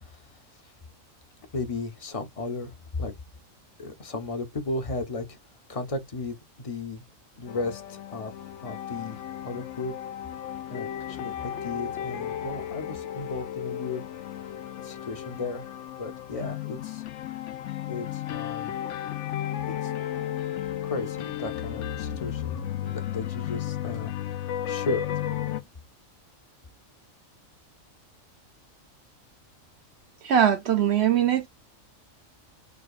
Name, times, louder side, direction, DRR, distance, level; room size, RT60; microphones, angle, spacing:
voice 1, 0.0-0.4 1.5-3.1 3.8-5.4 5.7-7.0 7.4-8.3 8.6-9.9 10.7-14.0 14.8-15.7 16.0-17.0 17.9-18.7 19.7-19.9 20.8-24.1 24.7-25.0 25.5-25.7, left 3 dB, 35° left, 0.7 m, -35 dB
sound 1, 7.5-25.6, left 11 dB, 70° left, 0.9 m, -34 dB
voice 2, 30.2-31.5, right 9 dB, 65° right, 0.8 m, -21 dB
4.8 x 2.2 x 2.3 m
omnidirectional pair, 1.4 m